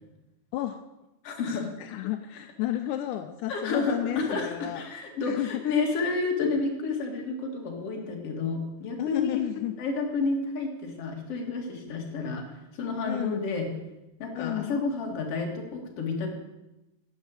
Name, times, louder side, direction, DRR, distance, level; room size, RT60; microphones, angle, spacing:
voice 1, 0.5-0.8 1.5-4.8 5.2-5.8 9.0-9.8 13.1-13.5 14.3-14.8, left 12 dB, 80° left, 8 dB, 1.8 m, -32 dB
voice 2, 1.2-1.6 3.5-9.4 9.8-12.5 12.7-13.7 14.2-16.3, left 4 dB, 45° left, 1 dB, 2.6 m, -30 dB
11.0 x 7.4 x 8.2 m, 0.98 s
omnidirectional pair, 4.2 m